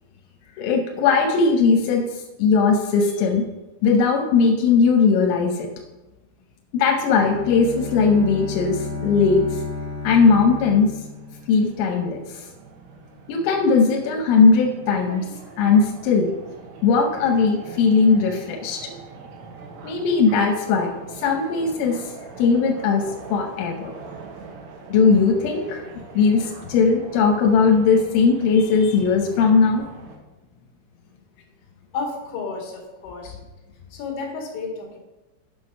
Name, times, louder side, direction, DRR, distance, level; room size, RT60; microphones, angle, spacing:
voice 1, 0.6-3.5 3.8-5.7 6.7-9.6 10.0-10.9 11.5-12.5 13.3-15.3 15.6-16.3 16.8-18.8 19.8-23.9 24.9-25.8 26.1-29.9, left 5 dB, 90° left, 2 dB, 3.5 m, -19 dB
Bowed string instrument, 7.1-12.1, left 3 dB, 25° left, 1.6 m, -32 dB
sound 1, 10.8-30.2, right 4 dB, 80° right, 3.4 m, -43 dB
voice 2, 31.9-33.4 33.9-35.0, left 4 dB, 70° left, -1 dB, 4.2 m, -31 dB
8.4 x 7.0 x 5.3 m, 1.1 s
omnidirectional pair, 5.6 m